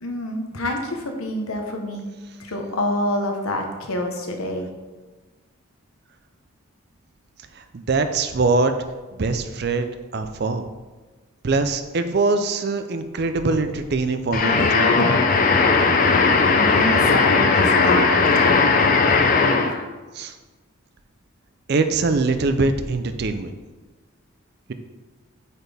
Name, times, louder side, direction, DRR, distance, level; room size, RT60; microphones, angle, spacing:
voice 1, 0.0-4.7 16.0-16.1 16.5-18.9, left 1 dB, 85° left, 3 dB, 1.0 m, -27 dB
voice 2, 7.6-8.7 9.1-10.7 11.4-15.0 20.1-20.3 21.7-23.5, right 3 dB, 50° right, 8 dB, 0.5 m, -23 dB
sound 1, 14.3-19.8, left 4 dB, 40° left, 0.4 m, -17 dB
8.2 x 4.2 x 3.4 m, 1.2 s
head